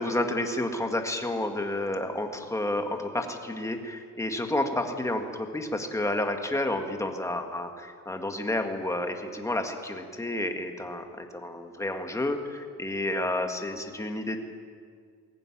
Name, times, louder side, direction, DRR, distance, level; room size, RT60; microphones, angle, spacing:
voice 1, 0.0-14.4, left 1 dB, 10° left, 4 dB, 1.7 m, -30 dB
21.5 x 16.5 x 9.9 m, 2.1 s
cardioid pair, 165°, 36 cm